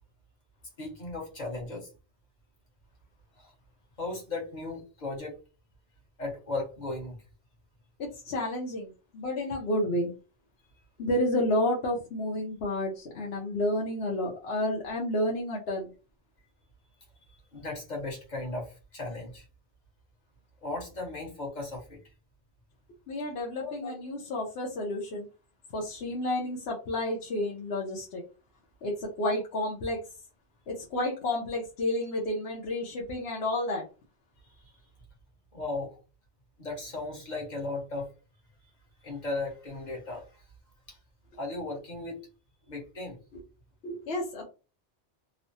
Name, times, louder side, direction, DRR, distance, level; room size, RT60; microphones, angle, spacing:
voice 1, 0.8-1.9 3.4-3.5 4.0-5.4 6.2-7.2 17.5-19.5 20.6-22.0 23.6-23.9 34.4-34.7 35.5-36.0 36.6-38.1 39.0-40.4 40.9-41.0 41.4-42.3 42.7-43.2, left 2 dB, 45° left, 1.1 m, -36 dB
voice 2, 8.0-10.1 11.0-15.9 23.1-25.3 25.7-28.2 28.8-30.0 30.7-33.9 43.8-44.4, left 1 dB, 75° left, 0.9 m, -30 dB
3.1 x 2.1 x 2.6 m
omnidirectional pair, 1.1 m